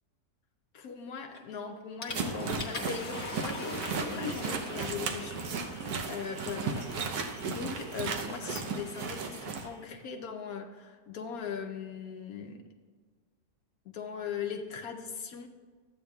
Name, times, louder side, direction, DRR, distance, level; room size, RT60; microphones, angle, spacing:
voice 1, 0.7-12.7 13.9-15.5, left 6 dB, 75° left, 4 dB, 1.1 m, -40 dB
Water / Toilet flush, 1.3-1.6 2.0-9.9, left 3 dB, 50° left, 1.3 m, -42 dB
sound 1, 2.1-9.7, right 5 dB, 85° right, 1.3 m, -35 dB
13.0 x 8.6 x 2.3 m, 1.5 s
omnidirectional pair, 1.6 m